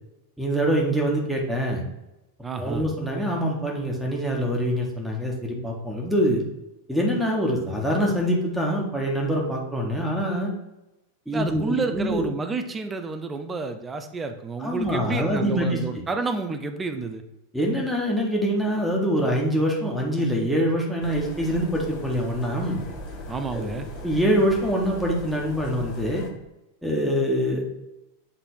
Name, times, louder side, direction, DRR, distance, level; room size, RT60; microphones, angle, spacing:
voice 1, 0.4-1.8 2.6-6.4 6.9-10.5 11.3-12.3 14.6-15.8 17.5-22.8 23.5-23.7 24.0-26.2 26.8-27.7, equal, ahead, -2 dB, 1.4 m, -24 dB
voice 2, 2.4-2.8 11.3-17.2 23.3-23.9, right 4 dB, 15° right, 7 dB, 0.7 m, -30 dB
sound 1, 21.0-26.3, left 2 dB, 40° left, 1.2 m, -38 dB
7.4 x 3.3 x 4.7 m, 0.94 s
figure-of-eight pair, 90°, 0 cm